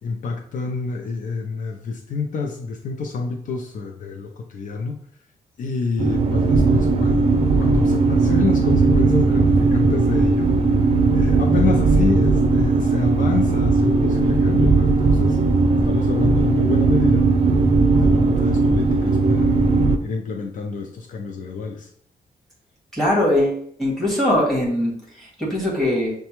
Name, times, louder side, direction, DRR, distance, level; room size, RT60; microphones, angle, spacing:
voice 1, 0.0-5.0 5.6-7.3 7.6-10.5 11.1-15.4 15.8-17.3 17.9-19.5 20.0-21.9, left 4 dB, 60° left, 2 dB, 0.5 m, -27 dB
sound 1, 6.0-20.0, right 3 dB, 40° right, 0.4 m, -18 dB
voice 2, 22.9-26.1, left 1 dB, ahead, -4 dB, 1.6 m, -21 dB
6.5 x 2.2 x 3.0 m, 0.63 s
wide cardioid pair, 145°, 15 cm